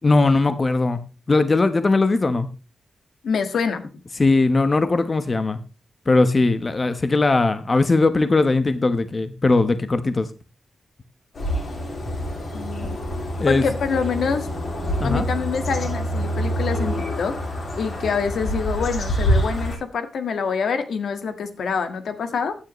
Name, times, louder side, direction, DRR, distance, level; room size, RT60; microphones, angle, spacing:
voice 1, 0.0-1.0 1.3-2.5 4.2-5.6 6.1-10.3 13.4-13.6 15.0-15.3, left 3 dB, 30° left, 10 dB, 1.0 m, -19 dB
voice 2, 3.2-3.9 12.5-13.0 13.5-14.5 15.0-17.3 17.8-22.6, left 5 dB, 80° left, 8 dB, 1.6 m, -26 dB
sound 1, 11.3-19.8, equal, 60° left, 8.0 m, -26 dB
15.5 x 9.4 x 3.1 m, 0.32 s
wide cardioid pair, 120°, 0 cm